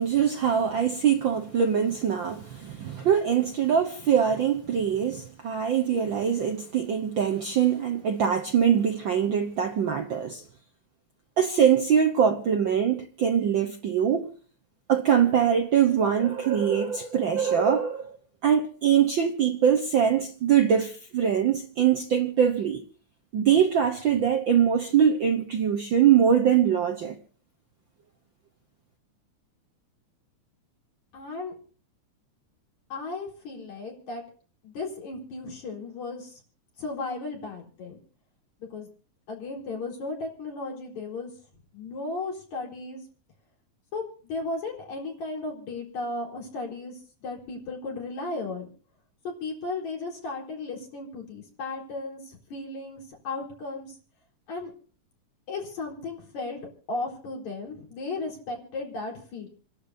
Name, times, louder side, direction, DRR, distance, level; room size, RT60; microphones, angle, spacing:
voice 1, 0.0-10.4 11.4-14.3 14.9-18.2 18.4-22.8 23.3-27.2, right 8 dB, 65° right, 1.2 m, -23 dB
voice 2, 31.1-31.5 32.9-34.2 34.6-36.4 36.8-38.0 38.7-38.9 39.3-41.3 41.7-43.0 43.9-48.7 49.2-54.0 54.5-54.7 55.5-56.6 56.9-59.5, left 3 dB, 70° left, 5.5 m, -35 dB
29.0 x 11.5 x 2.7 m
omnidirectional pair, 3.4 m